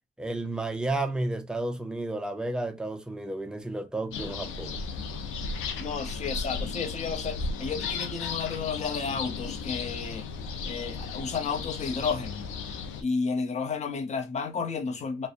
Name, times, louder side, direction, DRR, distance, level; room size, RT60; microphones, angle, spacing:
voice 1, 0.2-4.8, right 2 dB, 5° right, 0.4 m, -32 dB
sound 1, 4.1-13.0, left 4 dB, 90° left, 0.5 m, -35 dB
voice 2, 5.8-10.3 10.6-12.4 13.0-15.3, left 5 dB, 35° left, 0.7 m, -32 dB
2.6 x 2.1 x 2.4 m
cardioid pair, 90°, 20 cm